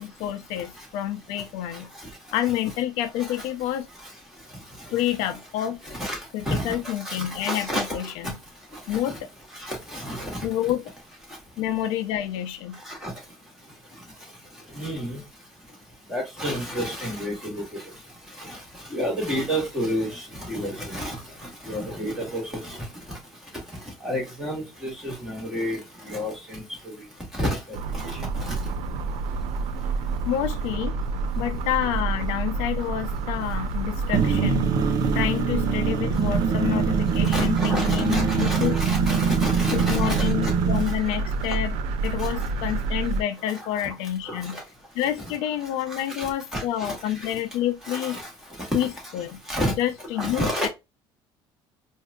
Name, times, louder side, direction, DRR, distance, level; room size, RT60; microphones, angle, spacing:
voice 1, 0.0-1.9 2.3-3.9 4.9-5.8 6.3-8.4 8.9-9.3 10.4-10.8 11.6-12.8 30.3-31.0 31.3-34.7 35.1-38.8 39.7-41.8 42.0-44.6 44.9-48.2 48.7-49.4 49.8-50.7, left 12 dB, 85° left, 0.6 m, -28 dB
voice 2, 5.6-6.2 6.4-8.0 8.9-9.1 9.6-10.5 12.9-13.1 14.7-15.2 16.1-17.8 18.4-18.6 18.9-21.2 21.4-22.8 24.0-25.8 26.1-26.9 27.3-27.6 27.9-28.1 28.4-28.6 37.3-40.5 40.9-41.0 42.2-42.3 43.8-43.9 44.3-44.6 45.9-47.4 47.8-48.3 48.6-48.9 49.5-49.7 50.2-50.7, equal, 5° right, 1.8 m, -30 dB
sound 1, 27.7-43.2, right 3 dB, 70° right, 0.5 m, -29 dB
sound 2, 34.1-40.9, right 7 dB, 40° right, 0.7 m, -24 dB
4.5 x 2.7 x 2.2 m
cardioid pair, 165°, 10 cm